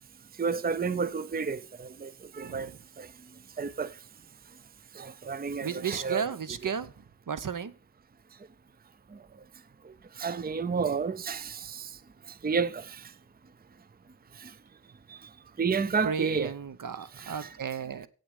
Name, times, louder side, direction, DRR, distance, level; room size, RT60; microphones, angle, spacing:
voice 1, 0.4-2.7 3.0-3.1 3.6-3.9 5.0-6.2 6.6-6.7 10.2-11.9 12.4-13.1 14.4-14.5 15.1-15.2 15.6-16.5 17.2-17.5, right 5 dB, 30° right, 0.6 m, -31 dB
voice 2, 5.6-6.9 7.3-7.7 16.0-18.1, right 7 dB, 70° right, 0.9 m, -34 dB
8.7 x 6.1 x 8.1 m
cardioid pair, 55°, 33 cm